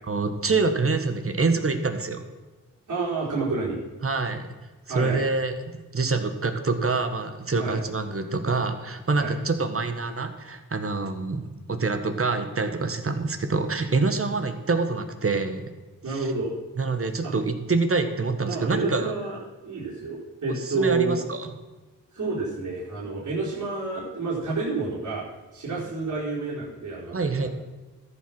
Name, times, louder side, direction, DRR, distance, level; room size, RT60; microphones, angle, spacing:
voice 1, 0.1-2.2 4.0-4.5 4.9-5.5 5.9-15.6 16.1-16.3 16.8-19.1 20.5-21.5 25.7-25.9 27.1-27.5, right 3 dB, 40° right, 8 dB, 1.6 m, -26 dB
voice 2, 2.9-3.8 4.9-5.2 7.6-7.8 9.1-9.3 16.0-16.5 17.2-17.3 18.5-19.4 19.6-21.1 22.1-25.2 25.5-27.5, right 3 dB, 60° right, -8 dB, 4.6 m, -29 dB
13.5 x 7.9 x 6.1 m, 1.2 s
cardioid pair, 65°, 34 cm